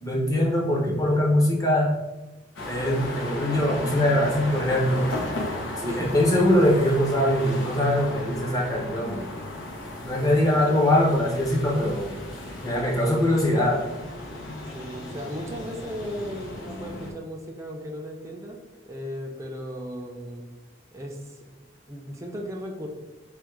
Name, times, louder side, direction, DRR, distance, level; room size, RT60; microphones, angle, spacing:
voice 1, 0.0-1.9 2.7-5.0 5.8-9.2 10.1-12.1 12.6-13.8, left 1 dB, 20° left, -2 dB, 0.8 m, -22 dB
sound 1, 2.6-17.1, left 1 dB, 85° left, 0.8 m, -35 dB
voice 2, 5.8-6.3 10.5-10.9 14.7-20.5 20.9-22.9, equal, 15° right, 0 dB, 0.5 m, -36 dB
3.6 x 2.2 x 4.5 m, 1.1 s
head